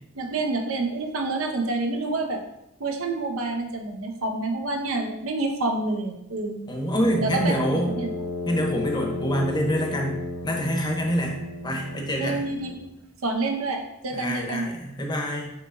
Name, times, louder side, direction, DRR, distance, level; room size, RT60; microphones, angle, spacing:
voice 1, 0.2-2.4 2.8-6.6 7.2-8.1 12.2-12.8 13.2-14.7, right 2 dB, 90° right, 3 dB, 0.7 m, -28 dB
voice 2, 6.7-8.0 8.5-10.2 10.4-12.4 14.1-15.5, equal, 20° left, 1 dB, 0.7 m, -26 dB
Brass instrument, 6.9-12.8, left 2 dB, 85° left, 0.7 m, -33 dB
7.4 x 2.9 x 2.5 m, 0.85 s
head